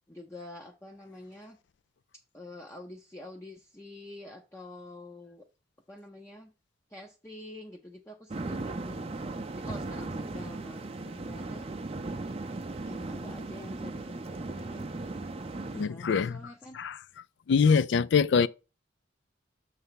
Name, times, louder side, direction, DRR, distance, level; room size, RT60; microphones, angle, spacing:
voice 1, 0.1-1.6 2.3-5.4 5.9-6.5 6.9-9.0 9.6-11.7 12.8-14.9 15.8-16.8, left 1 dB, 15° left, 0.6 m, -47 dB
sound 1, 8.3-15.8, right 2 dB, 30° right, 0.5 m, -37 dB
voice 2, 15.7-16.4 16.7-17.0 17.5-18.5, left 6 dB, 70° left, 0.4 m, -24 dB
6.8 x 3.3 x 5.6 m
head